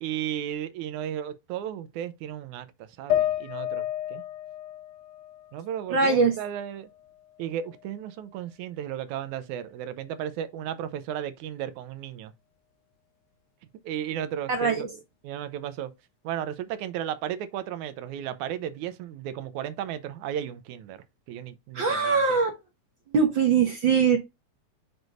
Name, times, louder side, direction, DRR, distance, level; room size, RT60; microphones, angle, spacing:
voice 1, 0.0-4.2 5.5-6.9 7.4-12.3 13.8-15.9 16.2-22.4, right 10 dB, 85° right, 2.1 m, -34 dB
sound 1, 3.1-6.5 6.9-7.9, left 12 dB, 85° left, 2.3 m, -32 dB
voice 2, 5.9-6.3 14.5-14.8 21.7-22.5 23.1-24.2, right 5 dB, 55° right, 1.4 m, -22 dB
6.4 x 6.3 x 2.6 m
omnidirectional pair, 3.5 m